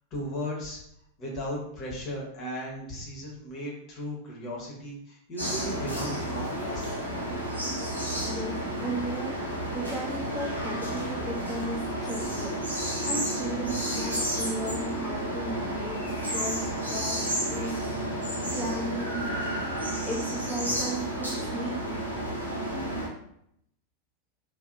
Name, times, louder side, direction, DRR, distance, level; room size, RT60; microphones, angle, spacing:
voice 1, 0.1-0.8 1.2-7.0, equal, 35° left, -3 dB, 0.9 m, -36 dB
sound 1, 5.4-23.1, right 1 dB, 90° left, 0.7 m, -31 dB
voice 2, 8.2-19.3 20.0-21.8, right 1 dB, 10° right, -5 dB, 0.7 m, -36 dB
2.7 x 2.1 x 2.3 m, 0.74 s
figure-of-eight pair, 90°, 0 cm